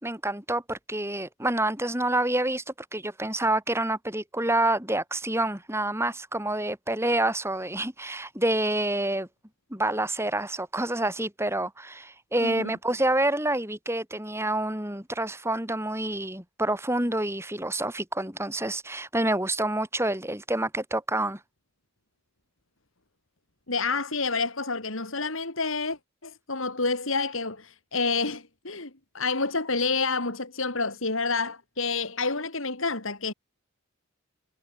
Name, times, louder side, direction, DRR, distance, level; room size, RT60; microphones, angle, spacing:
voice 1, 0.0-9.3 9.7-21.4, right 1 dB, 10° right, 7.0 m, -28 dB
voice 2, 23.7-26.0 26.2-33.3, left 4 dB, 70° left, 3.7 m, -29 dB
head